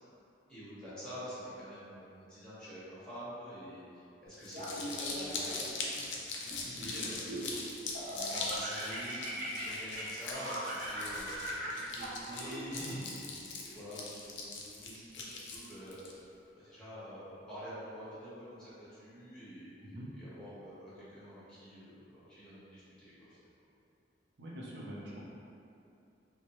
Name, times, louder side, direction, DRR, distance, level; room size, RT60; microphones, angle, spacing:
voice 1, 0.5-5.5 5.9-6.2 6.6-7.6 8.1-11.3 11.7-13.3 13.6-16.0 16.5-19.7 20.2-23.1, equal, 5° left, -13 dB, 1.4 m, -47 dB
Crumpling crinkling, 4.3-16.1, left 3 dB, 70° left, 0.5 m, -41 dB
Laughter, 4.5-5.8 6.4-7.5 8.0-13.0, right 1 dB, 50° right, 0.8 m, -41 dB
voice 2, 24.4-25.2, equal, 70° right, -5 dB, 0.5 m, -44 dB
4.5 x 2.1 x 3.0 m, 2.7 s
head